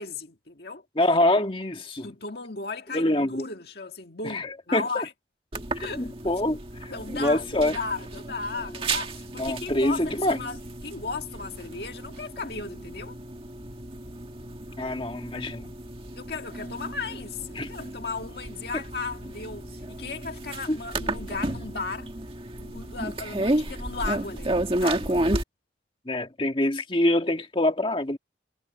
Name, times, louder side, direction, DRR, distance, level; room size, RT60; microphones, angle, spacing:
voice 1, 0.0-0.9 2.0-5.1 5.8-6.1 6.9-10.6 10.8-13.2 16.2-22.1 22.6-25.2, left 4 dB, 55° left, 1.9 m, -36 dB
voice 2, 1.0-2.1 2.9-3.4 4.2-5.0 5.8-7.8 9.4-10.4 14.8-15.7 17.6-17.7 18.7-18.8 20.7-20.8 26.1-28.2, left 1 dB, 30° left, 1.8 m, -25 dB
sound 1, 5.5-25.4, right 1 dB, 30° right, 2.0 m, -32 dB
head